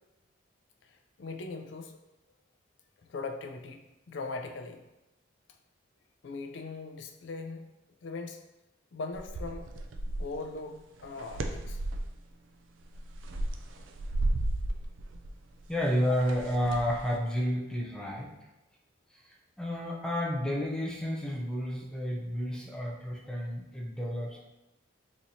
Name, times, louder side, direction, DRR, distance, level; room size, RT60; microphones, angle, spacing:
voice 1, 1.2-2.0 3.1-4.8 6.2-7.7 8.0-8.4 8.9-9.7 10.2-11.8, left 3 dB, 70° left, 4 dB, 0.4 m, -40 dB
sound 1, 9.1-10.4 11.0-12.2 12.8-17.1, right 1 dB, 85° right, 0.4 m, -34 dB
voice 2, 15.7-18.3 19.2-24.4, equal, 5° left, -2 dB, 0.4 m, -31 dB
4.0 x 3.0 x 2.7 m, 0.98 s
head